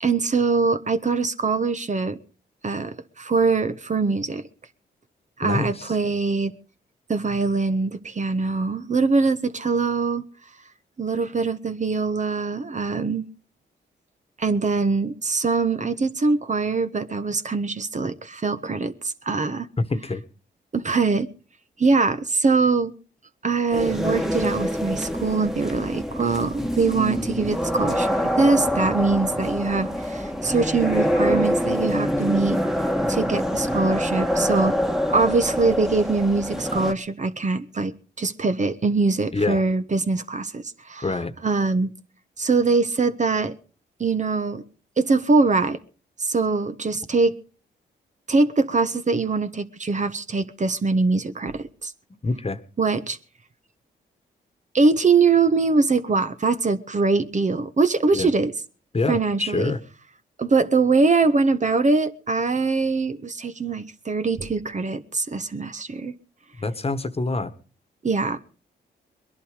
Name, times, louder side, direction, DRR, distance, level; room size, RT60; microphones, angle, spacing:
voice 1, 0.0-2.2 2.6-4.4 5.4-6.5 7.1-10.2 11.0-13.2 14.4-19.7 20.7-21.3 21.8-22.9 23.4-32.6 33.1-34.8 35.1-41.1 41.4-41.9 42.4-43.5 44.0-44.6 45.0-45.8 46.2-47.3 48.3-51.9 52.8-53.2 54.7-58.5 59.1-59.7 60.4-66.1 68.0-68.4, right 4 dB, 40° right, 1.2 m, -23 dB
voice 2, 5.4-5.9 19.9-20.2 39.3-39.6 41.0-41.3 52.2-52.6 58.1-58.3 58.9-59.8 66.6-67.5, left 3 dB, 30° left, 1.5 m, -26 dB
sound 1, 23.7-36.9, equal, ahead, 1.6 m, -25 dB
20.5 x 11.0 x 5.1 m
supercardioid pair, 55°, 19 cm